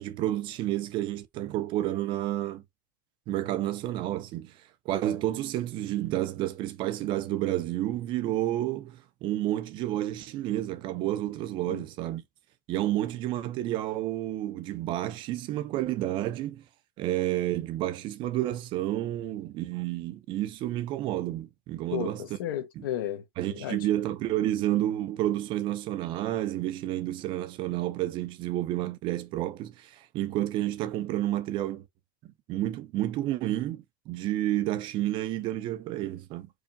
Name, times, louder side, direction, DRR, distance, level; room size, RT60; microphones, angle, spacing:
voice 1, 0.0-2.6 3.3-12.2 12.7-16.6 17.0-22.2 22.8-22.9 23.4-31.9 32.5-36.5, right 14 dB, 45° right, 0.7 m, -30 dB
voice 2, 21.9-23.9, left 11 dB, 85° left, 1.2 m, -34 dB
4.8 x 2.2 x 2.7 m
supercardioid pair, 120°, 11 cm